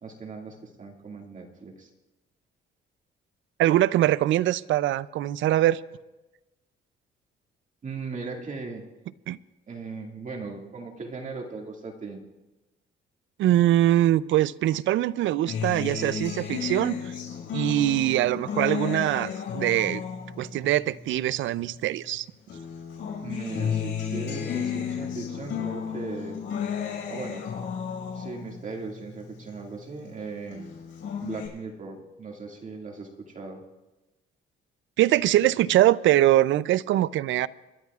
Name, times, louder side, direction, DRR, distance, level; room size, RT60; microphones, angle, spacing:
voice 1, 0.0-1.9 7.8-8.8 9.7-12.2 23.2-26.4 27.1-27.4 28.1-30.7 31.2-33.6, right 4 dB, 40° right, 2.1 m, -38 dB
voice 2, 3.6-5.8 9.3-9.4 13.4-17.0 17.5-20.0 20.4-22.3 35.0-37.5, right 14 dB, 75° right, 0.4 m, -23 dB
Acoustic guitar, 15.5-22.1 22.5-30.1 30.5-31.5, left 7 dB, 75° left, 5.4 m, -33 dB
28.5 x 12.0 x 2.4 m
cardioid pair, 90°, 20 cm